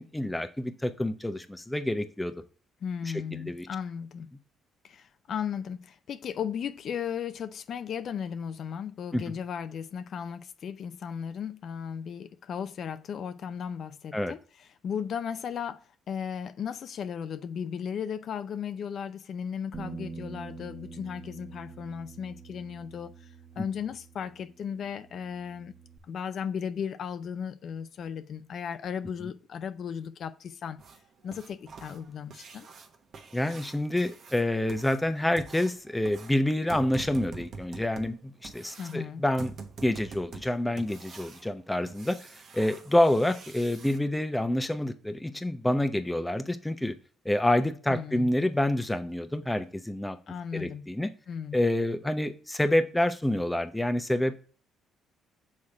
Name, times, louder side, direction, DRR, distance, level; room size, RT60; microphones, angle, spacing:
voice 1, 0.0-2.3 3.3-3.7 9.1-9.2 14.1-14.3 23.6-23.7 33.3-39.5 39.8-42.2 42.5-46.9 47.2-50.2 50.5-51.1 51.5-54.4, left 1 dB, 10° left, 0.8 m, -27 dB
voice 2, 2.8-4.3 4.8-25.7 26.0-30.8 31.2-32.7 38.8-39.2 47.9-48.3 50.3-50.9 51.3-51.6, left 7 dB, 60° left, 0.5 m, -36 dB
Bass guitar, 19.7-26.0, right 5 dB, 30° right, 1.1 m, -46 dB
sound 1, 30.8-44.0 46.3-46.4 46.8-46.9 47.4-47.5 48.0-48.1 48.5-48.7 49.1-49.2 49.6-49.7, right 4 dB, 55° right, 1.0 m, -46 dB
6.4 x 3.7 x 4.2 m
supercardioid pair, 70°, 0 cm